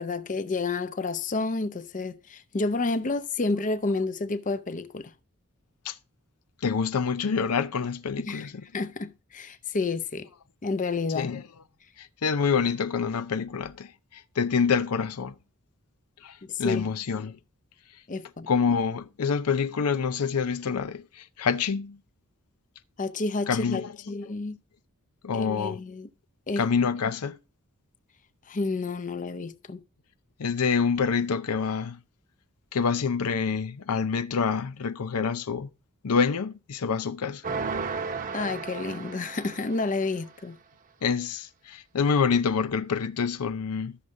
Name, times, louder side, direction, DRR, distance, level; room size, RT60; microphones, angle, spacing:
voice 1, 0.0-5.1 8.2-10.3 10.6-11.3 16.4-16.9 18.1-18.5 23.0-24.6 25.3-26.1 26.5-26.6 28.5-29.8 38.3-40.6, left 3 dB, 35° left, 0.6 m, -30 dB
voice 2, 6.6-8.5 11.1-11.4 12.0-15.3 16.2-17.4 18.5-22.0 23.5-24.2 25.2-25.8 26.6-27.4 30.4-32.0 32.7-35.7 36.0-37.4 41.0-43.9, left 5 dB, 85° left, 0.6 m, -27 dB
sound 1, 37.4-40.2, right 5 dB, 40° right, 0.9 m, -34 dB
14.0 x 6.4 x 2.6 m
head